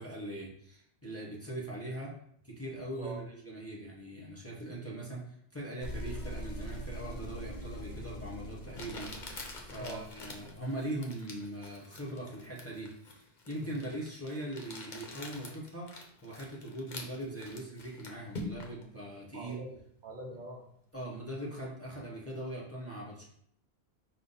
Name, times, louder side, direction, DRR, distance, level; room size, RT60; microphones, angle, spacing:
voice 1, 0.0-2.1 2.4-9.3 9.6-15.9 16.2-19.6 20.9-23.3, right 1 dB, 15° left, -4 dB, 0.8 m, -41 dB
sound 1, 5.8-10.6, equal, 90° left, 1.1 m, -43 dB
Crumpling crinkling, 7.8-7.9 8.7-18.8, left 2 dB, 55° left, 0.8 m, -46 dB
voice 2, 13.6-13.9 19.3-20.6, right 2 dB, 55° right, -1 dB, 0.7 m, -44 dB
5.3 x 2.2 x 3.9 m, 0.68 s
omnidirectional pair, 1.0 m